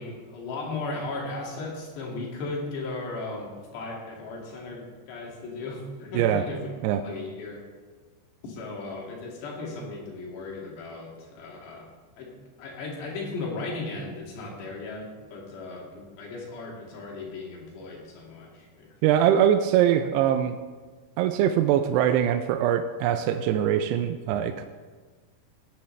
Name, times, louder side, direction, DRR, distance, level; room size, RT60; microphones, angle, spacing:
voice 1, 0.0-6.7 6.9-7.6 8.4-11.9 12.2-18.9, left 3 dB, 75° left, -2 dB, 4.2 m, -36 dB
voice 2, 6.1-6.5 6.8-7.0 19.0-20.6 21.2-24.6, right 10 dB, 85° right, 8 dB, 2.5 m, -22 dB
16.0 x 10.5 x 3.2 m, 1.4 s
omnidirectional pair, 5.0 m